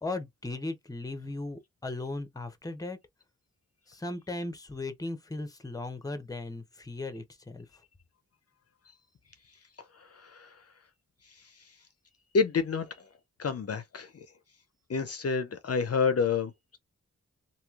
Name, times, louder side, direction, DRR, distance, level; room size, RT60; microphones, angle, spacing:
voice 1, 0.0-3.0 3.9-7.7, left 2 dB, 10° left, 0.7 m, -37 dB
voice 2, 12.3-12.9 13.4-14.1 14.9-16.8, left 5 dB, 50° left, 0.5 m, -28 dB
3.0 x 2.7 x 2.3 m
wide cardioid pair, 70°, 31 cm